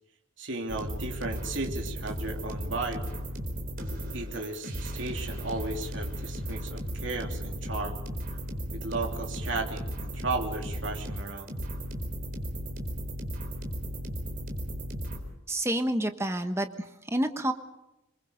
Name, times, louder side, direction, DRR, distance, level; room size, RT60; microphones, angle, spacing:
voice 1, 0.4-3.0 4.1-8.0 8.7-11.5, right 3 dB, 65° right, 2 dB, 3.1 m, -35 dB
sound 1, 0.7-15.2, equal, 45° right, 4.4 m, -35 dB
voice 2, 15.5-17.5, right 1 dB, 15° right, 7 dB, 1.3 m, -29 dB
27.0 x 23.0 x 5.3 m, 0.96 s
head